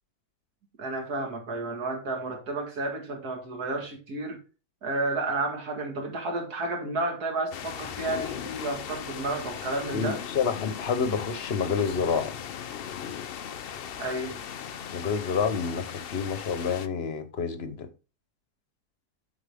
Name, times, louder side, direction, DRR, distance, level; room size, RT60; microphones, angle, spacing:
voice 1, 0.8-4.4 4.8-10.2 14.0-14.4, right 2 dB, 70° right, 2.4 m, -31 dB
sound 1, 7.5-16.9, left 8 dB, 70° left, 0.5 m, -38 dB
voice 2, 9.9-12.3 14.9-17.9, left 6 dB, 45° left, 1.0 m, -28 dB
7.9 x 6.1 x 3.5 m
omnidirectional pair, 1.7 m